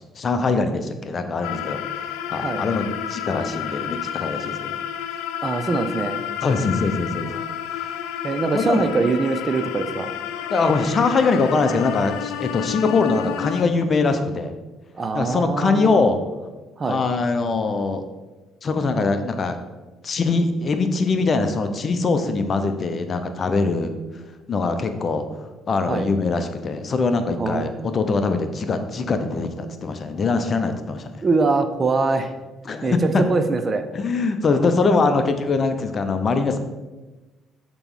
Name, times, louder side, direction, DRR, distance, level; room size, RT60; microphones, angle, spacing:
voice 1, 0.2-4.8 6.4-7.3 7.7-8.0 8.5-9.0 10.5-14.5 15.1-16.2 16.8-18.0 18.6-19.6 20.0-24.0 24.5-25.4 25.7-31.2 32.7-33.2 33.9-36.6, left 4 dB, 45° left, 8 dB, 0.7 m, -22 dB
sound 1, 1.4-13.6, left 9 dB, 85° left, 0.4 m, -30 dB
voice 2, 5.4-6.2 7.3-7.5 8.2-10.1 14.9-16.1 16.8-17.0 25.9-26.1 27.4-27.7 31.2-32.3 32.8-32.9 33.3-33.8, right 3 dB, 35° right, 8 dB, 0.6 m, -23 dB
6.9 x 3.1 x 5.5 m, 1.2 s
supercardioid pair, 70°, 0 cm